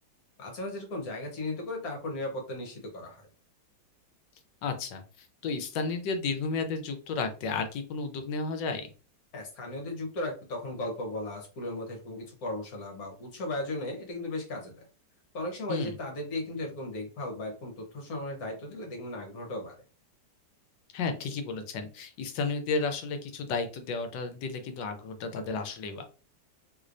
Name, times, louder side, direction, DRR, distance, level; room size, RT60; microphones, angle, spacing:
voice 1, 0.4-3.3 9.3-14.9 15.3-19.7, left 1 dB, 60° left, 2 dB, 1.5 m, -36 dB
voice 2, 4.6-5.0 5.4-8.9 15.7-16.0 20.9-26.0, left 4 dB, 85° left, 7 dB, 1.3 m, -32 dB
3.1 x 3.1 x 2.5 m, 0.35 s
omnidirectional pair, 1.9 m